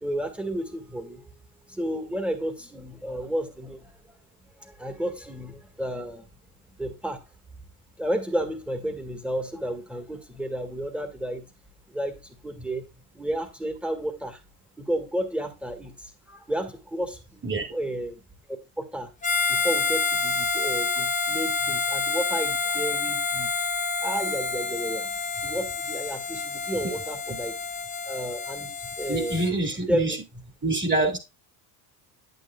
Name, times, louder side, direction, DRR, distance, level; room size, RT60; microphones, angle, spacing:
voice 1, 0.0-1.2 1.7-4.0 4.6-6.3 6.8-7.2 8.0-11.5 11.9-12.8 13.1-14.4 14.8-18.2 18.8-19.1 19.5-23.7 24.0-25.1 25.4-27.5 28.1-29.4 29.9-30.2, right 1 dB, ahead, 1.6 m, -32 dB
Harmonica, 19.2-29.5, left 4 dB, 15° left, 1.0 m, -28 dB
voice 2, 29.1-30.2 30.6-31.2, right 2 dB, 25° right, 2.3 m, -25 dB
9.3 x 8.0 x 2.3 m
supercardioid pair, 90°, 45 cm